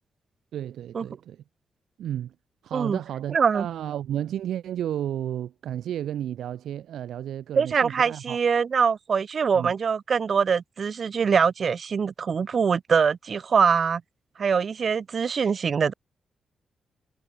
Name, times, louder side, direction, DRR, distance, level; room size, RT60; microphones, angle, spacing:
voice 1, 0.5-1.4 2.0-2.3 2.6-8.4 9.5-9.7, right 11 dB, 90° right, 7.8 m, -32 dB
voice 2, 3.3-3.7 7.6-14.0 14.4-15.9, right 6 dB, 40° right, 6.3 m, -23 dB
wide cardioid pair, 145°, 0 cm